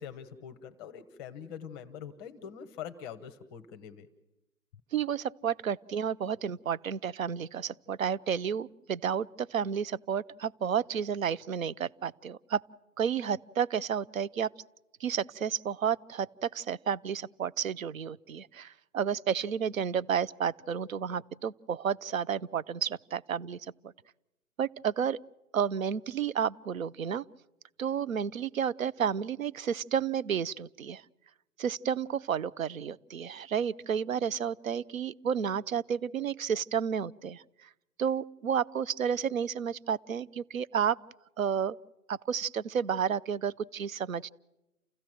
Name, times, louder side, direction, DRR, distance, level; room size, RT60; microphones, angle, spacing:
voice 1, 0.0-4.1, left 8 dB, 15° left, 11 dB, 0.8 m, -44 dB
voice 2, 4.9-12.6 13.0-14.5 15.0-23.6 24.6-25.2 25.5-27.2 27.8-31.0 31.6-37.7 38.0-41.0 41.4-41.8 42.1-44.3, right 8 dB, 60° right, 18 dB, 0.8 m, -31 dB
29.0 x 15.5 x 7.6 m, 0.98 s
figure-of-eight pair, 130°, 45 cm